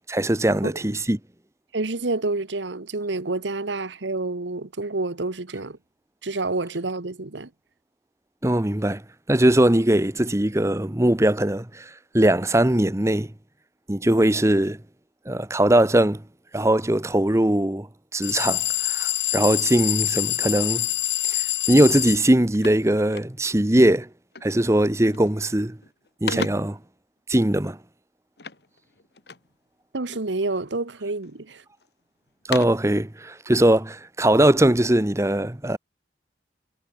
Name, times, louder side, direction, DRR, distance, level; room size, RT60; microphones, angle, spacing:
voice 1, 0.1-1.2 8.4-9.0 9.3-13.3 13.9-14.8 15.3-16.2 16.5-17.9 18.1-20.9 21.2-24.1 24.4-25.8 26.2-26.8 27.3-27.8 32.5-35.8, right 1 dB, 15° right, 0.9 m, -20 dB
voice 2, 1.7-5.8 6.2-7.5 26.3-26.5 29.9-31.6, right 2 dB, 85° right, 1.3 m, -28 dB
sound 1, 18.2-22.2, left 14 dB, 80° left, 1.5 m, -25 dB
sound 2, 21.7-21.9 22.1-23.7 24.3-24.7 25.0-25.5 25.8-26.9 28.4-29.6 30.1-30.7 31.2-31.9 32.3-33.0, left 5 dB, 65° left, 1.7 m, -37 dB
head